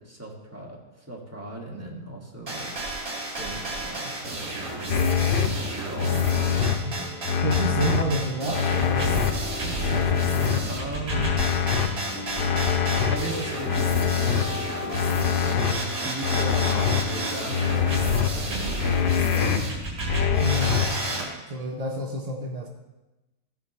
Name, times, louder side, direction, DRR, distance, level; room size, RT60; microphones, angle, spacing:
voice 1, 0.0-2.7 3.3-4.6 4.9-6.2 10.7-11.3 12.1-12.3 13.1-14.5 15.4-18.0 18.3-19.8 21.0-21.2, right 2 dB, 10° right, -3 dB, 1.6 m, -37 dB
intro glitched getho, 2.5-21.3, right 2 dB, 45° right, 2.4 m, -32 dB
sound 1, 4.9-5.5 6.0-6.7 7.2-8.0 8.5-9.3 9.8-10.6 11.1-11.9 12.4-13.2 13.7-14.4 14.9-15.7 16.2-17.0 17.5-18.3 18.8-19.6 20.1-20.9, left 8 dB, 85° left, 0.4 m, -24 dB
sound 2, 6.8-19.5, left 5 dB, 65° left, 1.3 m, -39 dB
voice 2, 6.8-9.2 9.7-10.7 20.4-22.7, right 1 dB, 60° right, 2 dB, 0.4 m, -30 dB
14.5 x 6.9 x 3.1 m, 1.1 s
omnidirectional pair, 1.7 m